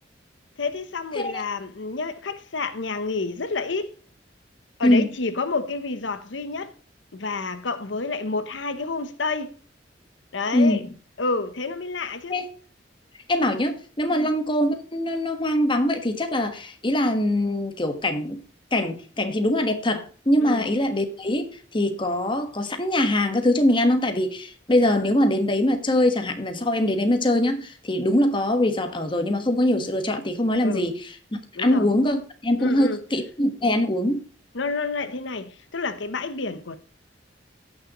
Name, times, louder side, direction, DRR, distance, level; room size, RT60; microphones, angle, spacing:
voice 1, 0.6-3.9 4.8-6.7 7.1-9.6 10.3-10.8 11.2-12.4 14.1-14.3 20.4-20.6 30.6-30.9 31.6-31.9 32.6-33.0 34.5-36.8, left 3 dB, 85° left, 0.9 m, -29 dB
voice 2, 10.5-10.9 12.3-12.5 13.3-18.4 18.7-34.2, left 1 dB, 25° left, 1.4 m, -23 dB
16.5 x 6.5 x 3.0 m
head